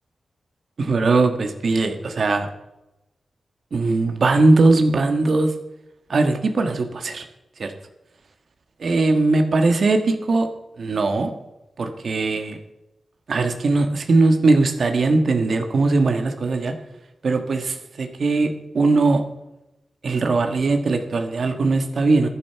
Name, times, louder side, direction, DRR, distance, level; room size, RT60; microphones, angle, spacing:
voice 1, 0.8-2.5 3.7-5.5 6.1-7.2 7.6-7.7 8.8-10.5 10.8-11.3 11.8-12.6 13.3-16.7 17.2-18.5 18.7-19.2 20.0-22.3, right 3 dB, 55° right, 6 dB, 1.5 m, -19 dB
15.0 x 11.0 x 4.7 m, 0.93 s
wide cardioid pair, 145°, 0 cm